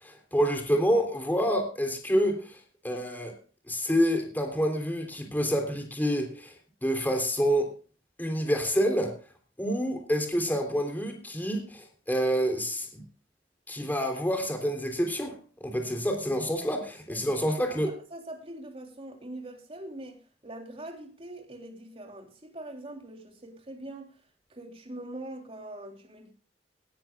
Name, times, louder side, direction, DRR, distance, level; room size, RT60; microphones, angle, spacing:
voice 1, 0.0-2.6 2.8-3.3 3.7-6.5 6.8-7.7 8.2-9.1 9.6-13.0 13.7-17.9, equal, 10° left, 3.4 m, -28 dB
voice 2, 17.1-24.1 24.5-26.3, right 1 dB, 35° right, 3.3 m, -43 dB
18.5 x 13.5 x 2.4 m
head